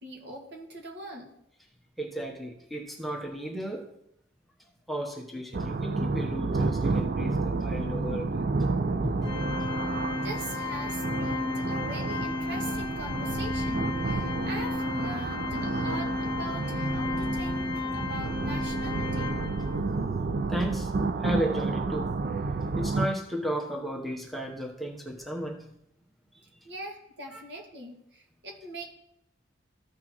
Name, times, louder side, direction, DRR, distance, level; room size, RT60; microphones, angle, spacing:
voice 1, 0.0-1.3 10.2-19.4 26.6-28.8, right 1 dB, 70° right, 0 dB, 1.8 m, -41 dB
voice 2, 2.0-3.8 4.9-8.3 9.0-9.3 20.5-20.9 21.2-22.1 22.7-25.6 26.3-26.5 27.3-27.4, equal, ahead, -1 dB, 0.9 m, -34 dB
sound 1, 5.5-23.1, right 3 dB, 50° right, 0.4 m, -30 dB
Organ, 9.2-20.0, left 3 dB, 25° left, 1.5 m, -33 dB
14.0 x 6.0 x 3.0 m, 0.79 s
head